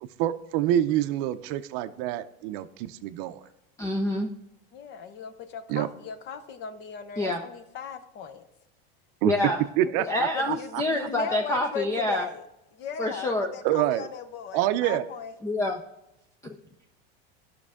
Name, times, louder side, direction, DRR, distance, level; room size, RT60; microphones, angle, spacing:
voice 1, 0.0-3.4 5.7-5.9 9.2-9.3 9.8-11.1 13.6-14.1 14.5-15.0, right 12 dB, 50° right, 11 dB, 0.6 m, -27 dB
voice 2, 3.8-4.3 7.2-7.4 9.2-9.6 10.0-12.3 13.0-13.5 15.4-15.8 16.4-16.5, left 1 dB, 10° left, 4 dB, 0.4 m, -27 dB
voice 3, 4.7-8.5 10.3-12.4 12.7-15.3, left 7 dB, 35° left, 11 dB, 0.8 m, -38 dB
12.5 x 6.1 x 3.6 m, 0.90 s
supercardioid pair, 150°, 31 cm